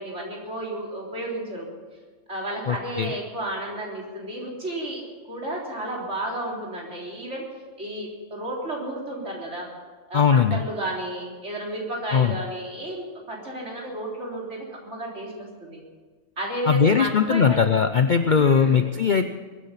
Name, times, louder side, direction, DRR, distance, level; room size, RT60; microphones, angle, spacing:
voice 1, 0.0-1.7 2.3-5.0 5.3-7.4 7.8-9.7 10.1-15.8 16.4-17.6 18.3-18.9, right 1 dB, 55° right, -3 dB, 4.2 m, -32 dB
voice 2, 2.7-3.1 10.1-10.6 12.1-12.3 16.7-19.3, left 6 dB, 50° left, 8 dB, 0.6 m, -20 dB
22.0 x 9.9 x 5.7 m, 1.5 s
omnidirectional pair, 1.4 m